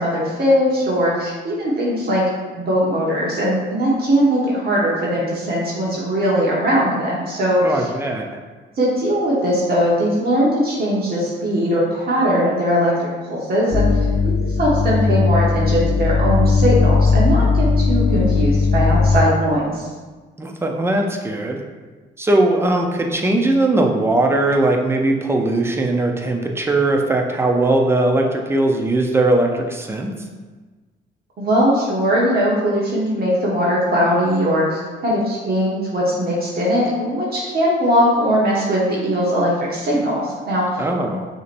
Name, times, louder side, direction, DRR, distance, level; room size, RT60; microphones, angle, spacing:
voice 1, 0.0-2.2 2.6-7.9 8.8-13.9 14.2-14.3 14.6-19.9 31.4-40.8, equal, 50° right, -5 dB, 1.1 m, -20 dB
voice 2, 7.6-8.3 20.4-21.6 22.2-30.1 40.8-41.3, right 2 dB, 10° right, 2 dB, 0.6 m, -19 dB
sound 1, 13.7-19.2, left 4 dB, 50° left, 0.7 m, -17 dB
6.2 x 2.9 x 2.6 m, 1.3 s
cardioid pair, 90°, 20 cm